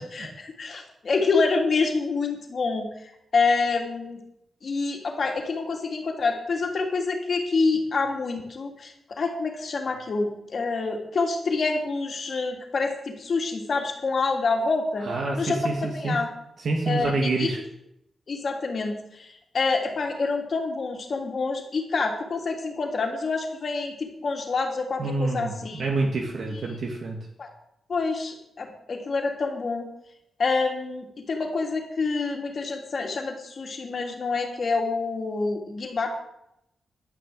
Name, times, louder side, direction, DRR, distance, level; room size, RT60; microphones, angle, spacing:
voice 1, 0.0-4.2 4.6-15.1 15.4-16.3 16.8-17.6 18.3-25.8 26.5-26.6 27.4-27.5 27.9-29.9 30.4-36.2, left 4 dB, 50° left, 2 dB, 3.0 m, -27 dB
voice 2, 15.0-15.7 16.0-16.2 16.6-17.6 25.0-27.2, right 3 dB, 60° right, 0 dB, 2.2 m, -27 dB
12.0 x 10.5 x 7.9 m, 0.80 s
wide cardioid pair, 150°, 0 cm